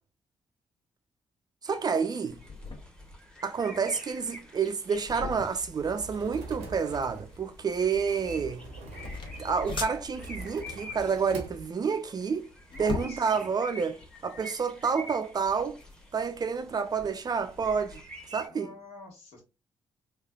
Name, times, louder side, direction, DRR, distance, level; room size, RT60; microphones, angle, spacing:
voice 1, 1.6-2.4 3.4-8.6 9.4-12.5 12.8-14.0 14.2-15.8 16.1-18.0 18.3-18.7, right 6 dB, 35° right, 0.4 m, -29 dB
sound 1, 1.7-18.5, equal, 5° left, 0.9 m, -48 dB
sound 2, 2.3-18.0, left 4 dB, 45° left, 0.7 m, -44 dB
sound 3, 5.3-11.7, right 2 dB, 75° right, 0.7 m, -44 dB
voice 2, 12.7-13.5 18.5-19.4, left 3 dB, 65° left, 1.4 m, -45 dB
3.1 x 2.3 x 2.2 m
hypercardioid pair, 40°, 12 cm